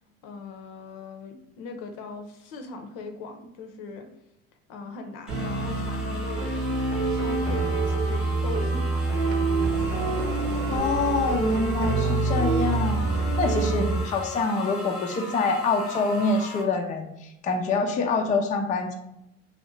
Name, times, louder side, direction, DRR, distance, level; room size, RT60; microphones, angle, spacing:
voice 1, 0.2-4.1 4.7-9.1, left 4 dB, 60° left, 5 dB, 0.7 m, -40 dB
sound 1, 5.3-16.6, equal, ahead, 0.9 m, -39 dB
sound 2, 5.3-14.0, right 3 dB, 80° right, 1.3 m, -26 dB
Sliding door, 9.1-12.1, right 5 dB, 65° right, 0.6 m, -38 dB
voice 2, 10.7-13.0 13.4-18.9, left 3 dB, 20° left, 3 dB, 0.4 m, -26 dB
3.1 x 2.6 x 3.1 m, 0.86 s
hypercardioid pair, 65°, 39 cm